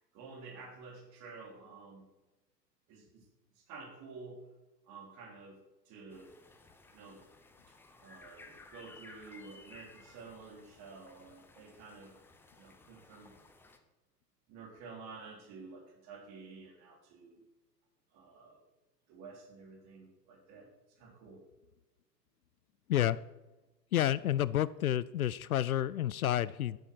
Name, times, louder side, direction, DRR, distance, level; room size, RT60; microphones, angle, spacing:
voice 1, 0.1-2.0 2.9-3.2 3.7-4.4 4.9-5.6 5.9-6.3 6.9-7.2 8.0-12.1 12.6-13.3 14.5-17.4 18.1-18.6 19.1-20.7 21.0-21.4, right 4 dB, 35° right, 3 dB, 3.4 m, -50 dB
sound 1, 6.1-13.8, left 3 dB, 5° left, 0.7 m, -57 dB
voice 2, 23.9-26.8, left 12 dB, 60° left, 18 dB, 0.5 m, -30 dB
14.0 x 7.8 x 6.2 m, 1.1 s
figure-of-eight pair, 110°, 50 cm